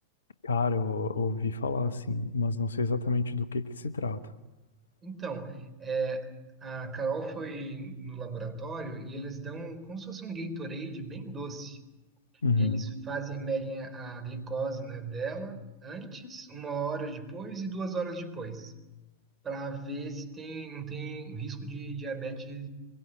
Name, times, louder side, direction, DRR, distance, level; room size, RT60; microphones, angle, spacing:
voice 1, 0.4-4.2 12.4-12.8, left 3 dB, 70° left, 1.2 m, -29 dB
voice 2, 5.0-11.8 12.6-18.7 19.4-22.7, right 4 dB, 20° right, 4.1 m, -36 dB
24.5 x 22.5 x 8.2 m
figure-of-eight pair, 90°, 0 cm